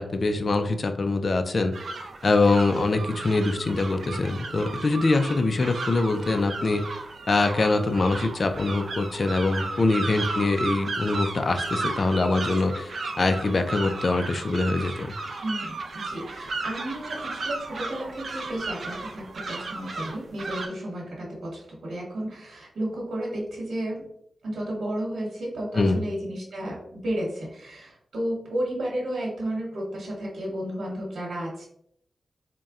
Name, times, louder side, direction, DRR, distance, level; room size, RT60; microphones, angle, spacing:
voice 1, 0.0-1.7 2.2-6.8 7.3-15.1 25.8-26.0, left 3 dB, 40° left, 8 dB, 0.3 m, -24 dB
sound 1, 1.7-20.7, right 3 dB, 55° right, 0.4 m, -34 dB
voice 2, 15.4-24.1 24.4-31.7, right 1 dB, 70° right, -4 dB, 1.2 m, -32 dB
4.0 x 2.2 x 3.6 m, 0.72 s
wide cardioid pair, 155°, 0 cm